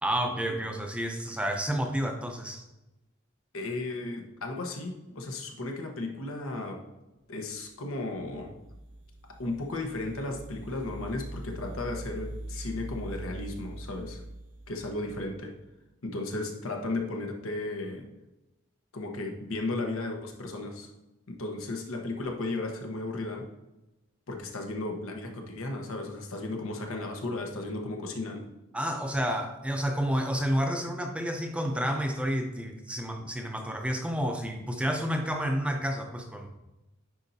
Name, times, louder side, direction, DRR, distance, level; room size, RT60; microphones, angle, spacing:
voice 1, 0.0-2.6 28.7-36.5, equal, 5° right, 3 dB, 0.5 m, -30 dB
voice 2, 3.5-6.8 7.3-8.5 9.3-14.2 14.7-15.5 16.0-18.0 18.9-20.9 21.3-23.5 24.3-28.5, left 2 dB, 85° left, 3 dB, 1.0 m, -35 dB
sound 1, 8.1-15.6, right 1 dB, 75° right, 0.8 m, -42 dB
9.8 x 4.3 x 2.7 m, 1.0 s
head